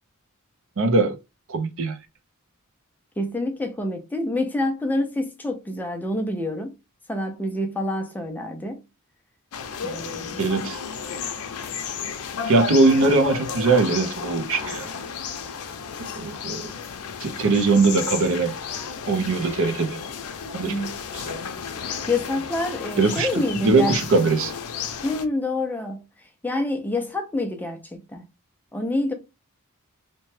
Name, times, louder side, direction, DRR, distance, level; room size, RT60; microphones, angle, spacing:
voice 1, 0.8-1.1 1.5-2.0 10.4-10.8 12.4-14.9 16.2-16.7 17.2-18.5 19.1-20.0 20.5-20.7 21.1-21.2 23.0-24.5, right 3 dB, 65° right, 0.6 m, -21 dB
voice 2, 3.2-6.7 7.1-8.8 9.8-10.5 20.7-21.0 22.1-24.0 25.0-26.0 26.4-28.2 28.7-29.1, left 1 dB, 10° left, 0.4 m, -27 dB
sound 1, 9.5-25.3, left 6 dB, 85° left, 0.5 m, -33 dB
2.8 x 2.1 x 3.1 m
head